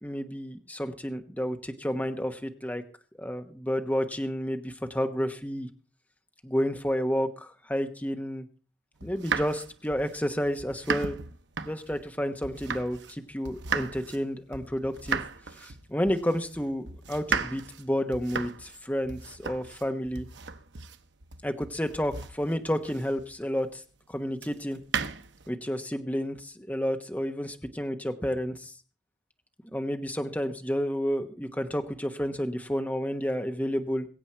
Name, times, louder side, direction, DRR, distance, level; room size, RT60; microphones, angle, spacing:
voice 1, 0.0-2.8 3.2-5.7 6.4-8.5 9.0-11.2 11.6-15.2 15.6-20.3 21.4-23.8 24.1-24.8 25.5-28.7 29.7-34.1, equal, 10° left, 6 dB, 1.1 m, -30 dB
Cutting Zucchini, 9.0-13.2 13.4-23.4 24.4-25.5, right 5 dB, 80° right, 0.9 m, -36 dB
22.5 x 8.1 x 4.5 m, 0.37 s
head